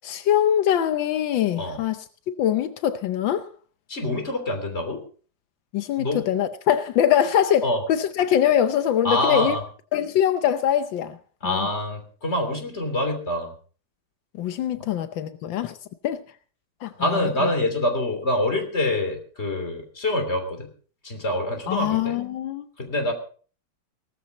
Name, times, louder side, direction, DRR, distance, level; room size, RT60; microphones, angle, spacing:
voice 1, 0.0-2.0 2.3-3.5 5.7-9.6 9.9-11.2 11.4-11.7 14.4-15.8 16.0-16.2 16.8-17.5 21.7-22.7, left 10 dB, 85° left, 1.6 m, -23 dB
voice 2, 3.9-5.0 6.0-6.3 7.6-7.8 9.0-9.6 11.4-13.5 17.0-20.7 21.0-22.2 22.8-23.1, left 1 dB, 35° left, 3.5 m, -25 dB
18.0 x 13.5 x 4.1 m
omnidirectional pair, 2.0 m